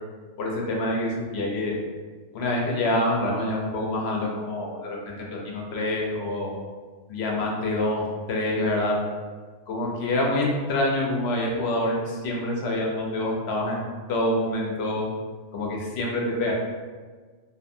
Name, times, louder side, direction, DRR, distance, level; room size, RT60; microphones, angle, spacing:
voice 1, 0.4-1.7 2.3-6.5 7.1-9.0 9.7-13.8 14.1-15.1 15.5-16.5, left 1 dB, 70° left, -1 dB, 0.8 m, -26 dB
2.5 x 2.5 x 2.6 m, 1.4 s
omnidirectional pair, 1.2 m